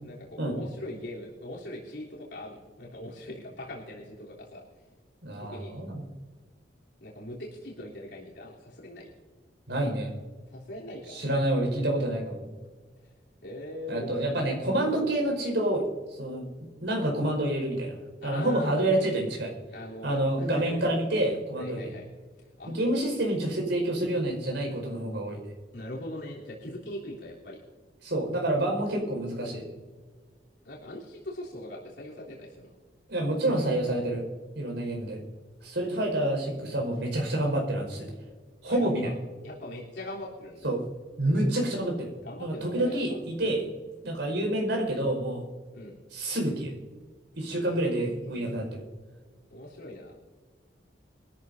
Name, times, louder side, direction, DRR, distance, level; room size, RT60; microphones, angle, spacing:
voice 1, 0.0-4.6 5.4-5.8 7.0-9.1 10.5-11.2 13.4-14.4 18.2-19.1 19.7-20.9 21.5-22.1 22.6-22.7 25.7-27.6 30.6-32.7 38.6-39.2 39.4-40.7 41.3-41.7 42.2-43.6 45.7-45.9 47.5-48.7 49.5-50.1, left 1 dB, 80° left, -5 dB, 3.4 m, -41 dB
voice 2, 5.2-6.0 9.7-10.1 11.1-12.4 13.9-17.9 18.2-19.5 20.0-21.8 22.7-25.4 28.0-29.6 33.1-34.3 34.5-35.2 35.6-38.1 38.6-39.1 40.6-40.8 41.2-42.1 42.4-43.6 44.0-45.4 46.1-46.7 47.3-48.8, right 1 dB, 85° right, 1 dB, 5.2 m, -28 dB
23.5 x 13.5 x 2.7 m, 1.4 s
head